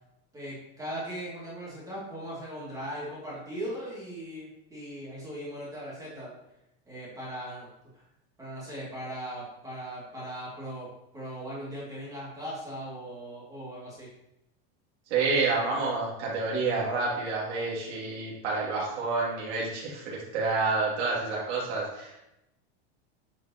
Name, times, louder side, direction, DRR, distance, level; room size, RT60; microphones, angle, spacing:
voice 1, 0.3-6.4 6.9-7.7 7.9-8.0 8.4-10.9 11.1-14.1, equal, 10° right, -7 dB, 2.5 m, -39 dB
voice 2, 15.1-22.2, right 3 dB, 85° right, -5 dB, 2.7 m, -29 dB
9.0 x 5.1 x 3.0 m, 0.87 s
supercardioid pair, 160°, 33 cm